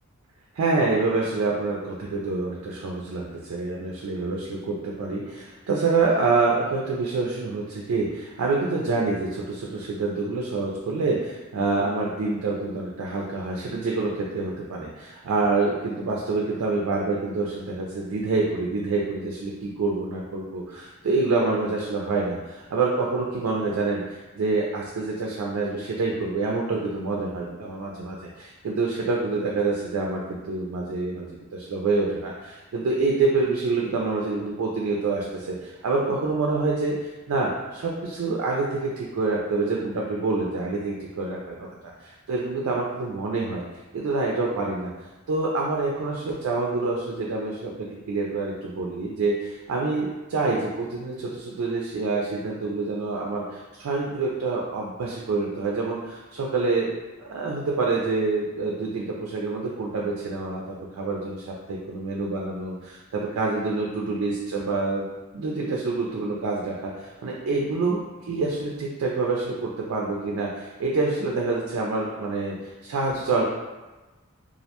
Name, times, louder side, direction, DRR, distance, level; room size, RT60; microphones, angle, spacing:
voice 1, 0.5-41.9 42.3-43.6 43.9-44.9 45.3-56.9 57.2-65.1 65.3-73.4, right 3 dB, 80° right, -2 dB, 0.4 m, -27 dB
2.4 x 2.1 x 2.8 m, 1.2 s
head